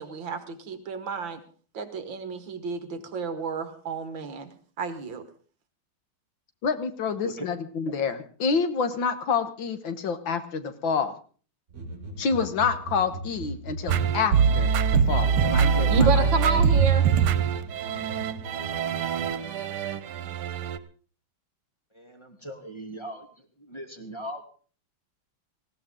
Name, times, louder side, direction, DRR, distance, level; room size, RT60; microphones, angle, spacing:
voice 1, 0.0-1.4 1.7-4.5 4.8-5.2 15.9-17.1, right 4 dB, 65° right, 10 dB, 2.2 m, -30 dB
voice 2, 6.6-11.1 12.2-14.7 15.1-16.3, left 5 dB, 65° left, 10 dB, 1.9 m, -28 dB
sound 1, 11.7-19.3, right 2 dB, 40° right, 5.4 m, -40 dB
sound 2, 13.9-20.8, right 7 dB, 90° right, 1.8 m, -23 dB
voice 3, 21.9-23.3 23.6-24.4, right 1 dB, 15° left, 3 dB, 2.5 m, -39 dB
19.5 x 16.5 x 3.7 m, 0.41 s
omnidirectional pair, 2.3 m